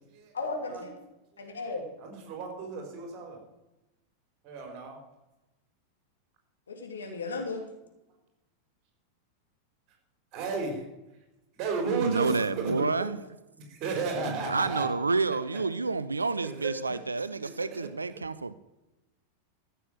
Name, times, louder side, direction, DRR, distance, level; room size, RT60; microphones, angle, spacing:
voice 1, 0.3-0.9 1.4-1.9 6.7-7.6, left 3 dB, 70° left, 2.8 m, -35 dB
voice 2, 2.0-3.4 4.4-5.0 10.3-10.8 11.6-12.8 13.6-14.9 15.5-15.6 16.4-16.7 18.1-18.2, right 5 dB, 40° right, 4.3 m, -33 dB
voice 3, 11.8-13.2 14.3-18.5, right 3 dB, 80° right, 0.5 m, -29 dB
14.0 x 6.9 x 7.4 m
figure-of-eight pair, 90°, 0 cm